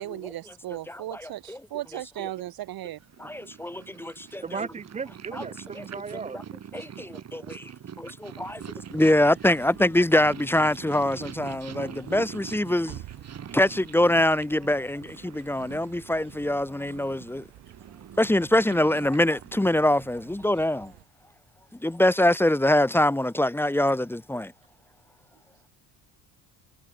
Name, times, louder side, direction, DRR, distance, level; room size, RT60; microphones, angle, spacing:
voice 1, 0.0-3.0, right 14 dB, 65° right, 1.9 m, -36 dB
voice 2, 0.9-1.6 3.2-4.7 5.3-5.4 5.7-5.9 6.3-6.4 6.7-7.7 8.0-8.6 8.9-13.0 13.5-17.4 18.2-20.9 21.8-24.5, left 1 dB, 5° left, 1.6 m, -24 dB
Purr, 3.0-20.7, right 8 dB, 40° right, 7.4 m, -44 dB
voice 3, 4.4-6.4, right 5 dB, 20° right, 0.4 m, -36 dB
Suburban atmos trees child birds, 8.4-21.0, right 15 dB, 80° right, 5.5 m, -51 dB
cardioid pair, 155°, 39 cm